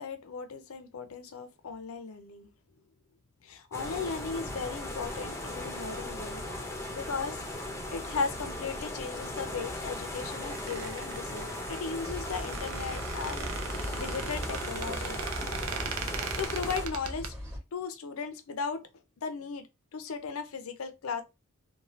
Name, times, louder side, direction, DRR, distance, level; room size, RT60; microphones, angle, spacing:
voice 1, 0.0-2.5 3.4-6.4 6.9-7.4 7.9-15.2 15.8-15.9 16.4-17.3 17.7-18.9 19.2-19.7 19.9-21.2, left 5 dB, 85° left, 0.5 m, -37 dB
sound 1, 3.7-16.9, left 1 dB, 15° left, 0.6 m, -38 dB
Squeak, 10.1-17.3, right 7 dB, 85° right, 0.5 m, -39 dB
sound 2, 12.1-17.6, equal, 10° right, 1.1 m, -40 dB
2.7 x 2.3 x 3.0 m
head